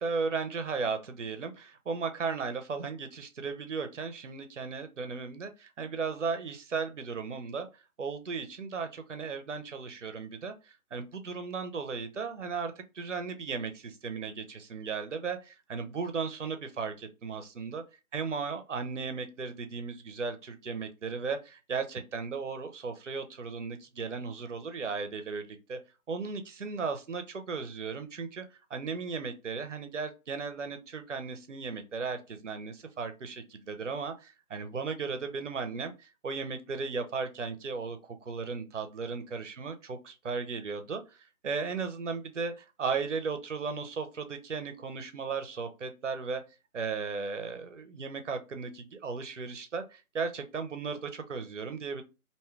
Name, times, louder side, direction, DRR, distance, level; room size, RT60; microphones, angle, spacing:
voice 1, 0.0-7.7 8.0-17.8 18.1-25.8 26.1-28.4 28.7-41.0 41.4-46.4 46.7-52.0, right 5 dB, 55° right, 0.6 m, -36 dB
2.7 x 2.3 x 3.2 m
figure-of-eight pair, 170°, 44 cm